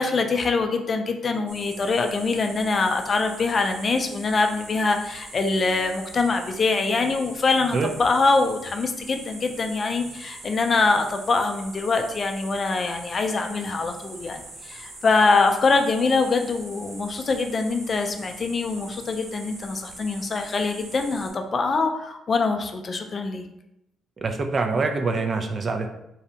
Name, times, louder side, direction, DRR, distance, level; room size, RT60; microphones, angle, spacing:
voice 1, 0.0-23.4, left 3 dB, 40° left, 5 dB, 0.3 m, -24 dB
sound 1, 1.5-21.3, right 2 dB, 75° right, 0.8 m, -42 dB
voice 2, 24.2-25.9, right 4 dB, 40° right, 5 dB, 0.3 m, -25 dB
2.7 x 2.0 x 2.8 m, 0.85 s
cardioid pair, 90°, 0 cm